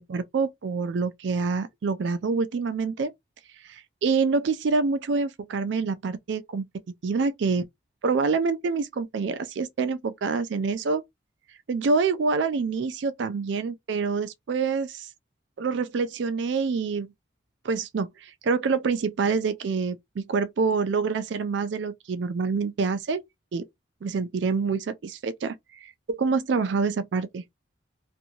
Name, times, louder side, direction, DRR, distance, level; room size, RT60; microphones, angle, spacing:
voice 1, 0.0-3.1 3.6-6.6 7.0-7.7 8.0-11.0 11.7-15.1 15.6-17.1 17.6-23.2 23.5-23.7 24.0-25.6 25.8-27.4, right 4 dB, 75° right, 0.4 m, -26 dB
2.6 x 2.5 x 2.8 m
head